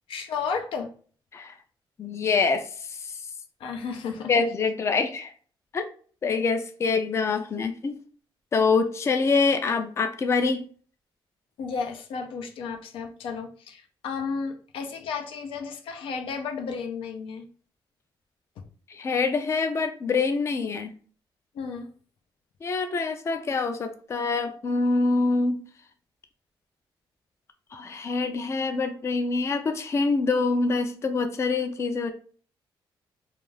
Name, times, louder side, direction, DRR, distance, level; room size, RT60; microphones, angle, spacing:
voice 1, 0.1-0.9 3.6-4.4 11.6-17.5 18.6-18.7 21.5-21.9, left 5 dB, 90° left, 4 dB, 0.5 m, -33 dB
voice 2, 2.0-2.7 4.3-5.3 5.7-5.9 6.2-8.0 8.5-10.7 18.9-20.9 22.6-25.6 27.7-32.1, left 4 dB, 30° left, 7 dB, 0.3 m, -25 dB
2.4 x 2.3 x 3.1 m, 0.43 s
cardioid pair, 120°, 9 cm